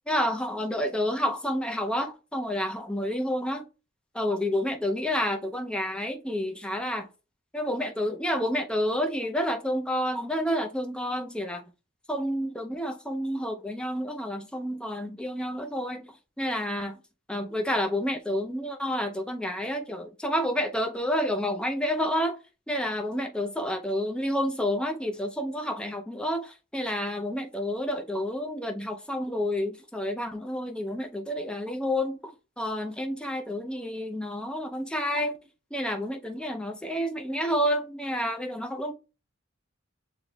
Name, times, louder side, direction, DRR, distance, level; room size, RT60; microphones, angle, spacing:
voice 1, 0.1-3.7 4.1-7.1 7.5-11.6 12.1-17.0 17.3-22.4 22.7-35.4 35.7-38.9, equal, 5° left, 0.4 m, -29 dB
7.2 x 2.9 x 2.2 m
head